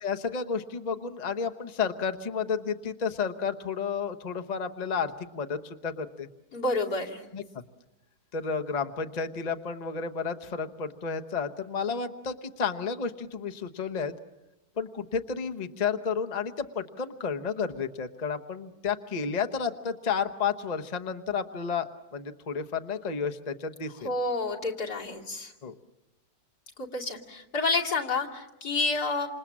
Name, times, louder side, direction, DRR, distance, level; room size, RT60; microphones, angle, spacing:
voice 1, 0.0-6.3 7.3-7.6 8.3-14.2 14.8-24.1 25.6-25.7, left 6 dB, 30° left, 6 dB, 1.0 m, -31 dB
voice 2, 6.5-7.2 24.0-25.5 26.8-29.3, left 3 dB, 80° left, -2 dB, 3.2 m, -29 dB
28.0 x 27.0 x 7.4 m, 0.95 s
omnidirectional pair, 1.6 m